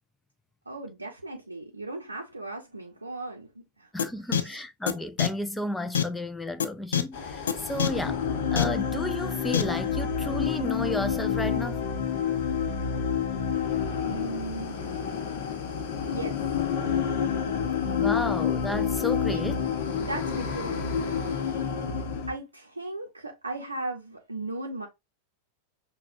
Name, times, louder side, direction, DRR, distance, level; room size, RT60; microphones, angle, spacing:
voice 1, 0.7-3.5 3.8-3.9 4.3-4.6 14.0-15.0 16.1-16.4 19.3-19.6 20.0-21.4 22.3-24.9, right 2 dB, 80° right, 0.6 m, -37 dB
voice 2, 3.9-8.2 8.5-11.8 17.8-19.6, left 1 dB, 5° left, 0.4 m, -32 dB
sound 1, 4.0-4.1 4.3-4.4 4.9-5.0 5.2-5.3 5.9-6.0 6.6-6.7 6.9-7.0 7.5-7.6 7.8-7.9 8.6-8.7 9.5-9.6, left 8 dB, 65° left, 0.4 m, -23 dB
sound 2, 7.1-22.3, left 7 dB, 50° left, 0.8 m, -29 dB
5.8 x 2.3 x 2.5 m
figure-of-eight pair, 90°, 0 cm